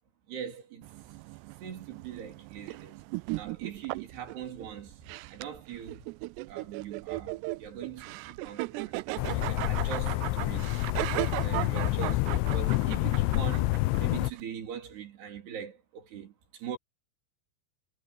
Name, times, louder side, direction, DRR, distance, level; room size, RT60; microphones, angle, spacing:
voice 1, 0.3-0.9 1.6-3.0 3.4-5.0 5.3-6.1 6.5-10.7 11.1-16.8, right 8 dB, 65° right, 5.4 m, -42 dB
sound 1, 0.8-14.4, right 21 dB, 85° right, 2.4 m, -37 dB
sound 2, 9.2-14.3, left 18 dB, 85° left, 2.9 m, -28 dB
omnidirectional pair, 5.3 m